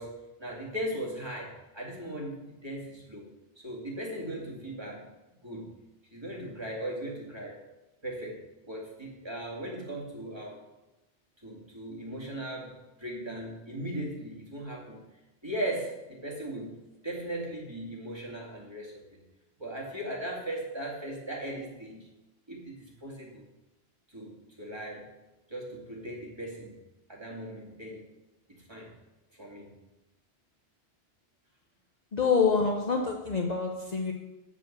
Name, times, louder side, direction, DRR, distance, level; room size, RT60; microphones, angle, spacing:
voice 1, 0.0-3.3 3.6-5.1 5.4-5.7 6.1-7.6 8.0-10.7 11.4-15.0 15.4-16.7 17.0-19.2 19.6-22.1 22.5-23.4 24.1-25.1 25.5-26.8 27.1-28.1 28.5-28.9 29.3-29.7, right 1 dB, 25° right, -3 dB, 2.3 m, -38 dB
voice 2, 32.1-34.1, left 5 dB, 45° left, 1 dB, 0.8 m, -26 dB
8.0 x 5.0 x 7.4 m, 1.0 s
omnidirectional pair, 1.1 m